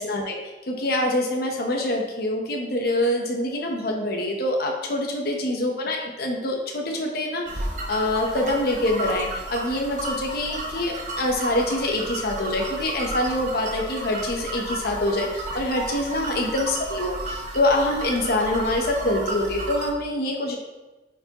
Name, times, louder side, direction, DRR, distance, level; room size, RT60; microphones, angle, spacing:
voice 1, 0.0-20.6, left 1 dB, 60° left, 1 dB, 0.8 m, -25 dB
sound 1, 7.5-19.9, right 1 dB, 45° right, 1.0 m, -33 dB
9.2 x 4.7 x 2.9 m, 1.1 s
head